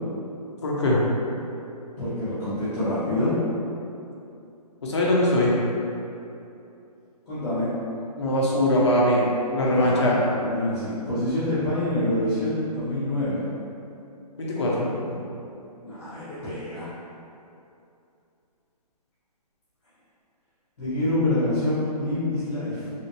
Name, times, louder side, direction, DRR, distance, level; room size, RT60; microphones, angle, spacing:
voice 1, 0.6-1.0 4.8-5.5 8.2-9.2 9.5-10.1 14.4-14.9, left 1 dB, 45° left, -5 dB, 0.6 m, -21 dB
voice 2, 2.0-3.3 7.3-7.7 9.6-13.4 15.8-16.9 20.8-22.9, left 1 dB, 25° left, -15 dB, 1.3 m, -26 dB
3.1 x 2.7 x 2.9 m, 2.7 s
hypercardioid pair, 180°, 21 cm